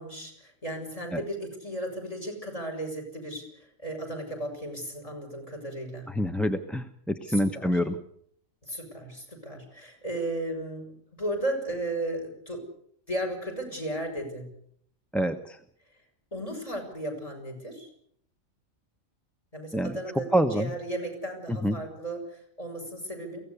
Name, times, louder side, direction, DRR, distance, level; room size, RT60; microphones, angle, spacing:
voice 1, 0.0-6.1 7.2-7.8 8.6-10.8 11.1-12.6 13.1-14.5 16.3-17.9 19.5-23.4, right 1 dB, 25° left, 4 dB, 6.6 m, -35 dB
voice 2, 6.1-7.9 15.1-15.6 19.7-20.0 20.3-20.7 21.5-21.8, equal, ahead, 7 dB, 0.9 m, -26 dB
23.0 x 17.0 x 8.2 m, 0.66 s
omnidirectional pair, 1.4 m